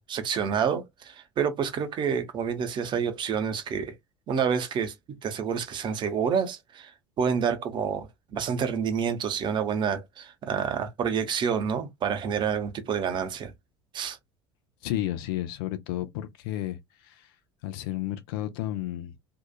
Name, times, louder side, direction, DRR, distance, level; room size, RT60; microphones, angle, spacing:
voice 1, 0.0-3.9 4.3-4.9 5.2-6.9 7.2-13.5 13.9-14.2, right 7 dB, 35° right, 0.7 m, -28 dB
voice 2, 14.8-17.3 17.6-19.1, left 13 dB, 60° left, 0.5 m, -32 dB
2.7 x 2.3 x 2.2 m
figure-of-eight pair, 70°, 14 cm